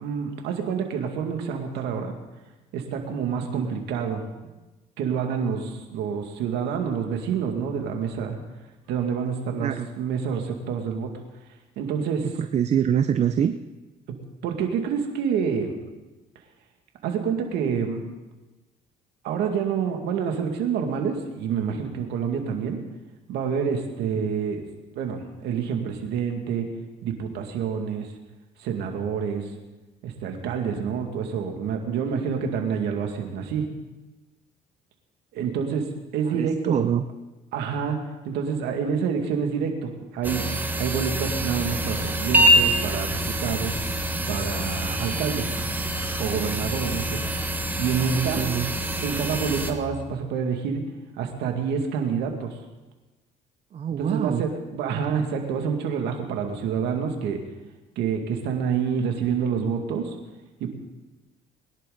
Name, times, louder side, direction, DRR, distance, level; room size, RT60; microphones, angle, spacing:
voice 1, 0.0-2.1 2.7-4.2 5.0-8.4 8.9-9.7 10.0-11.1 11.8-12.3 14.1-15.8 17.0-18.0 19.2-22.8 23.3-24.6 24.9-26.7 27.0-28.1 28.6-29.5 30.0-33.7 35.3-36.8 37.5-40.5 40.8-43.8 44.3-45.6 46.2-47.2 47.8-48.4 49.0-50.8 51.2-52.6 54.0-57.4 58.0-60.2 60.6-60.7, right 6 dB, 85° right, 3 dB, 2.2 m, -27 dB
voice 2, 12.4-13.5 24.0-24.3 36.3-37.0 47.9-48.7 53.7-54.5, right 9 dB, 40° right, 9 dB, 0.6 m, -25 dB
sound 1, 40.2-49.7, right 1 dB, 10° right, 1.5 m, -25 dB
22.0 x 11.0 x 4.0 m, 1.1 s
cardioid pair, 110°, 17 cm